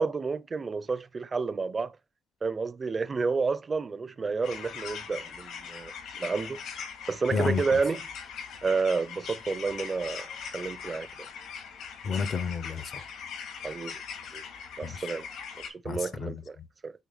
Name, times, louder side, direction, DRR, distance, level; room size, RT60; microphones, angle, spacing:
voice 1, 0.0-2.0 2.4-6.6 7.1-8.0 8.6-10.3 10.5-11.1 13.6-14.0 14.3-14.4 14.8-15.3 15.7-16.6 16.8-16.9, right 4 dB, 35° right, 0.6 m, -30 dB
sound 1, 4.4-15.7, left 6 dB, 80° left, 2.7 m, -41 dB
voice 2, 7.3-7.8 12.0-13.0 14.8-15.1 15.9-16.7, left 5 dB, 55° left, 0.8 m, -31 dB
8.2 x 3.4 x 4.0 m
cardioid pair, 90°, 0 cm